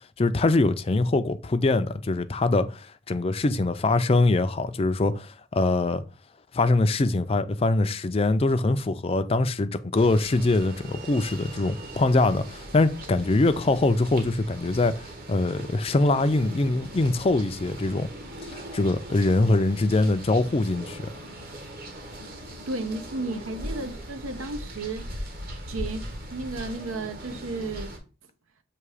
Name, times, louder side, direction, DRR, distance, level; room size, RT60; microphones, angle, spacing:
voice 1, 0.2-6.0 6.5-18.1 18.4-21.1, left 2 dB, 30° left, 0.4 m, -23 dB
sound 1, 9.9-28.0, right 1 dB, 45° right, 1.2 m, -40 dB
voice 2, 22.7-25.2 25.7-27.9, right 3 dB, 85° right, 0.8 m, -33 dB
6.9 x 2.8 x 4.8 m
head